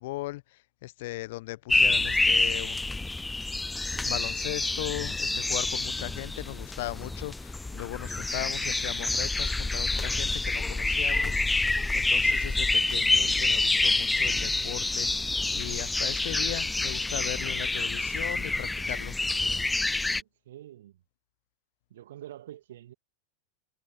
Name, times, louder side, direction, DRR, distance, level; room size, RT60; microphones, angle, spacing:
voice 1, 0.0-2.8 4.0-19.2, left 19 dB, 50° left, 1.1 m, -38 dB
sound 1, 1.7-20.2, left 2 dB, 10° left, 0.4 m, -27 dB
voice 2, 20.0-21.0 21.9-22.9, right 12 dB, 60° right, 2.4 m, -46 dB
figure-of-eight pair, 90°, 0 cm